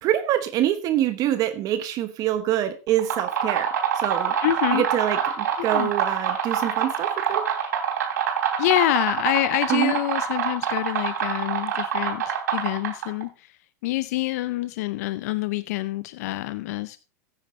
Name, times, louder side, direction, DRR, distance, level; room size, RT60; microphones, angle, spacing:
voice 1, 0.0-4.3 4.7-7.5 9.7-9.9, right 12 dB, 40° right, 10 dB, 1.0 m, -25 dB
sound 1, 2.9-13.2, right 7 dB, 85° right, 3.6 m, -26 dB
voice 2, 4.4-4.9 5.6-5.9 8.6-13.6 13.8-17.0, left 16 dB, 70° left, 15 dB, 0.5 m, -26 dB
14.0 x 9.5 x 3.2 m, 0.35 s
hypercardioid pair, 120°, 9 cm